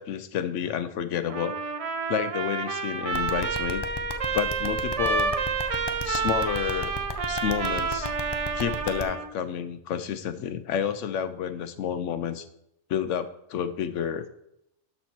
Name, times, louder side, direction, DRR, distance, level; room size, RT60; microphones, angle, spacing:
voice 1, 0.0-1.5 2.1-3.8 4.3-5.3 6.0-6.9 7.3-8.1 8.6-12.5 12.9-14.2, left 8 dB, 75° left, 12 dB, 1.0 m, -30 dB
Trumpet, 1.3-9.3, right 4 dB, 50° right, 0.4 m, -29 dB
sound 1, 3.1-9.0, left 4 dB, 35° left, 0.4 m, -34 dB
12.5 x 4.4 x 4.4 m, 0.79 s
omnidirectional pair, 1.3 m